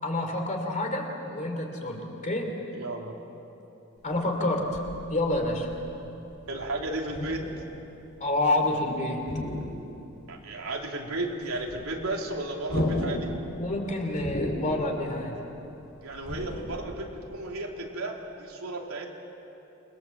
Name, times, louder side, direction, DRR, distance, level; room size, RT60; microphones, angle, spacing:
voice 1, 0.0-2.5 4.0-4.8 5.1-5.7 8.2-9.3 13.6-15.4, left 2 dB, 35° left, 3 dB, 3.3 m, -28 dB
voice 2, 2.7-3.1 6.5-7.5 10.3-13.3 16.0-19.1, right 2 dB, 85° right, 0 dB, 3.3 m, -34 dB
sound 1, 4.0-8.9 9.1-10.4 10.7-10.8 11.1-16.8, left 1 dB, 50° left, 4.2 m, -35 dB
28.5 x 21.0 x 7.6 m, 2.9 s
head